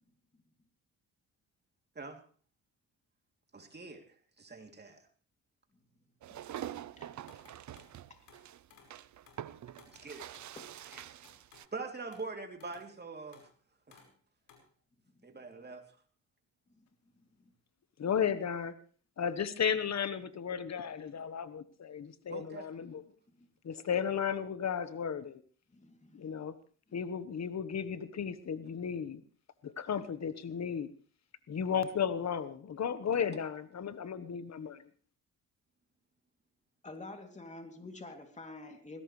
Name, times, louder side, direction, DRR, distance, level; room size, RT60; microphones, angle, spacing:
voice 1, 3.5-4.1 4.4-5.0 10.0-10.3 10.9-11.0 11.7-13.5 13.9-14.0 15.2-15.8 22.3-22.7, right 3 dB, 30° right, 4 dB, 3.1 m, -43 dB
sound 1, 6.2-11.7, right 11 dB, 55° right, 0.6 m, -45 dB
sound 2, 7.3-8.0 8.3-9.0 9.3-9.5 9.8-10.6 10.9-11.7 12.1-12.3 12.6-12.9 13.3-13.5 13.9-14.2 14.4-14.7, left 6 dB, 80° left, 5.2 m, -60 dB
voice 2, 18.0-18.7 19.2-23.0 23.6-25.4 26.1-26.5 26.9-29.2 29.6-30.9 31.5-34.8, left 7 dB, 50° left, 13 dB, 1.3 m, -34 dB
voice 3, 25.7-26.3 36.8-39.0, left 2 dB, 20° left, 4 dB, 2.9 m, -48 dB
20.0 x 17.0 x 3.3 m, 0.43 s
cardioid pair, 80°, 35 cm